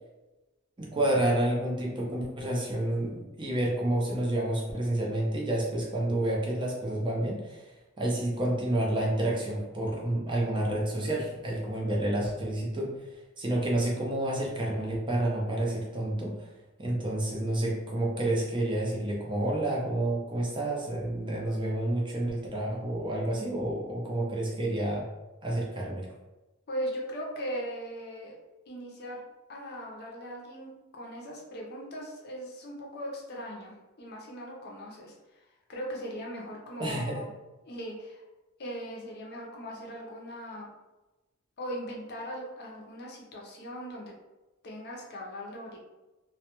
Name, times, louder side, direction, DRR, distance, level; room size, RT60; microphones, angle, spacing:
voice 1, 0.8-7.7 8.0-13.1 13.4-16.5 16.8-25.0 25.4-26.1 36.8-37.2, right 1 dB, 25° right, -2 dB, 0.5 m, -29 dB
voice 2, 26.7-28.3 28.7-29.2 29.5-35.4 35.7-37.3 37.6-38.2 38.6-40.7 41.6-44.1 44.6-45.8, equal, 50° left, -2 dB, 0.6 m, -39 dB
2.2 x 2.2 x 2.9 m, 1.1 s
head